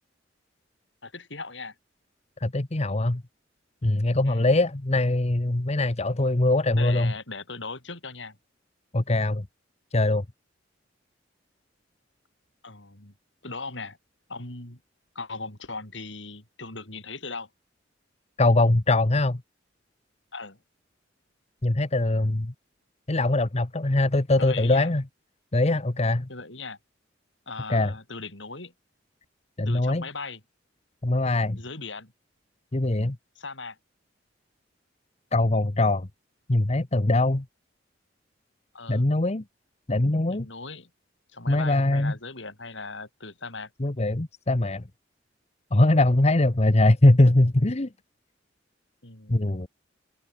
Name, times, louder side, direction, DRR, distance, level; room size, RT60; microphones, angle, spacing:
voice 1, 1.0-1.7 4.2-4.5 6.8-8.4 12.6-13.1 13.4-14.0 14.3-14.8 15.1-17.5 20.3-20.6 24.4-24.9 26.3-26.8 27.5-28.7 29.7-30.4 31.5-32.1 33.3-33.8 38.7-39.1 40.3-40.9 41.3-43.7 49.0-49.5, left 3 dB, 70° left, 6.2 m, -38 dB
voice 2, 2.4-3.2 3.8-7.1 8.9-9.4 9.9-10.2 18.4-19.4 21.6-22.5 23.1-25.0 25.5-26.3 27.7-27.9 29.6-30.0 31.0-31.6 32.7-33.2 35.3-36.1 36.5-37.4 38.9-39.4 39.9-40.5 41.5-42.1 43.8-44.8 45.7-47.9 49.3-49.7, left 2 dB, 35° left, 1.1 m, -22 dB
head